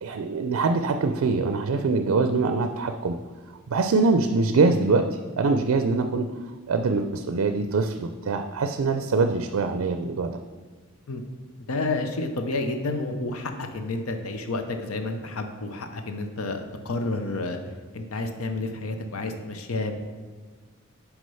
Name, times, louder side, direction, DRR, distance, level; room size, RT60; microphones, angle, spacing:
voice 1, 0.0-3.1 3.7-5.0 5.4-6.3 6.7-10.4, right 4 dB, 75° right, 7 dB, 0.4 m, -23 dB
voice 2, 11.7-17.6 17.9-20.0, left 2 dB, 90° left, 6 dB, 0.7 m, -30 dB
6.2 x 4.9 x 5.5 m, 1.4 s
head